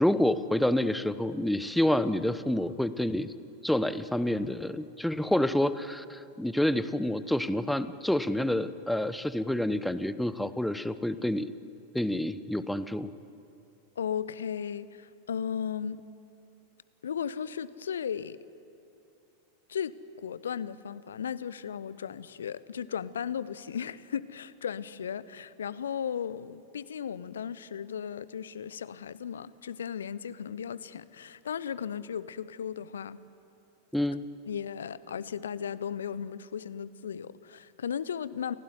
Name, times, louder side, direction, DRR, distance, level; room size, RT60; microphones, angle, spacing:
voice 1, 0.0-3.3 3.6-11.5 11.9-13.1 33.9-34.2, left 1 dB, ahead, 13 dB, 1.0 m, -28 dB
voice 2, 14.0-16.0 17.0-18.4 19.7-33.2 34.5-38.6, left 8 dB, 65° left, 17 dB, 0.8 m, -36 dB
29.0 x 17.0 x 9.8 m, 2.6 s
figure-of-eight pair, 90°, 0 cm